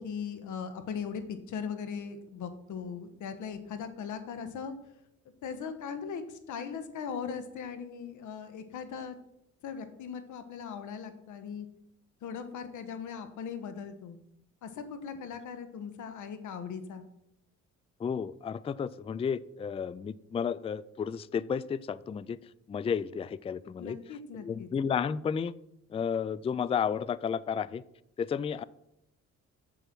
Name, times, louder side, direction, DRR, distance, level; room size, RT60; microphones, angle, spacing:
voice 1, 0.0-4.7 5.4-9.1 9.6-11.7 12.2-14.2 14.6-17.1 23.8-24.7, left 6 dB, 75° left, 10 dB, 1.3 m, -39 dB
voice 2, 18.0-22.4 22.7-24.0 24.4-25.5 25.9-27.8 28.2-28.6, left 7 dB, 20° left, 19 dB, 0.3 m, -32 dB
8.1 x 7.0 x 6.1 m, 0.78 s
cardioid pair, 90°, 30 cm